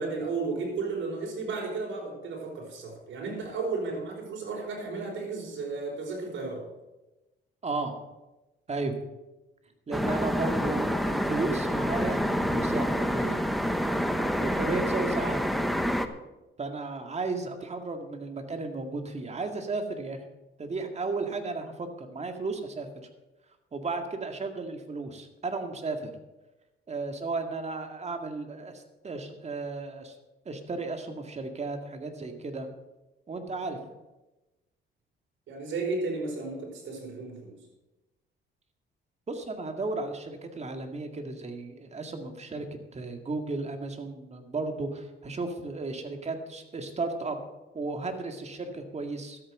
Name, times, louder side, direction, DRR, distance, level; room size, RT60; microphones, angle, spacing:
voice 1, 0.0-6.7 35.5-37.6, right 3 dB, 75° right, 0 dB, 4.9 m, -33 dB
voice 2, 7.6-8.0 8.7-9.0 9.9-13.4 14.4-15.4 16.6-20.2 20.6-22.9 23.7-26.1 26.9-30.1 30.5-32.7 33.3-33.8 39.3-42.7 42.9-47.4 47.7-49.4, right 3 dB, 35° right, 5 dB, 2.0 m, -34 dB
sound 1, 9.9-16.1, equal, ahead, 1.0 m, -27 dB
13.0 x 8.7 x 6.5 m, 1.0 s
cardioid pair, 90°, 20 cm